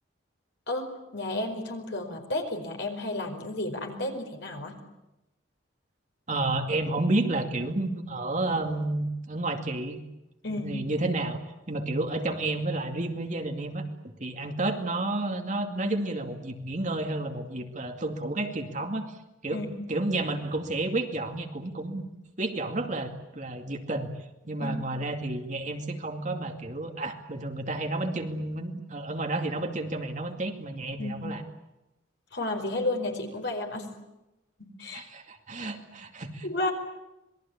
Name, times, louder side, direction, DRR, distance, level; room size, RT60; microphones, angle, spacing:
voice 1, 0.7-4.8 10.4-10.7 19.5-19.7 24.6-24.8 31.0-31.1 32.3-33.9 34.6-35.1 36.4-36.7, left 2 dB, 55° left, 4 dB, 5.0 m, -32 dB
voice 2, 6.3-10.0 10.5-11.4 11.7-13.8 14.2-19.2 19.4-19.6 19.9-22.0 22.4-24.1 24.4-31.4 34.9-36.5, right 2 dB, 35° right, 4 dB, 2.4 m, -31 dB
26.5 x 21.5 x 8.7 m, 0.95 s
head